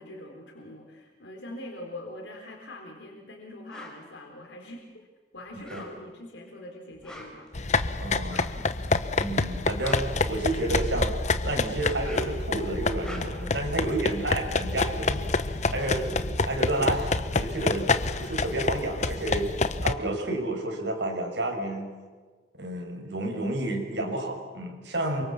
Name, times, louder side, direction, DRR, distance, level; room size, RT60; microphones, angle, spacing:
voice 1, 0.0-4.9 5.3-8.6, left 1 dB, 90° left, 1 dB, 4.0 m, -44 dB
sound 1, 3.7-4.0 5.5-6.2 6.9-7.5 8.3-8.6 9.5-10.8 11.8-12.5 12.9-13.6 15.1-15.2 15.4-17.1, equal, 5° left, 5.2 m, -44 dB
sound 2, 7.5-19.9, left 3 dB, 40° left, 1.0 m, -28 dB
voice 2, 8.0-8.4 9.2-11.2 11.4-17.9 18.2-21.9 22.6-25.2, right 1 dB, 75° right, 2 dB, 6.2 m, -31 dB
28.5 x 24.5 x 7.3 m, 1.4 s
head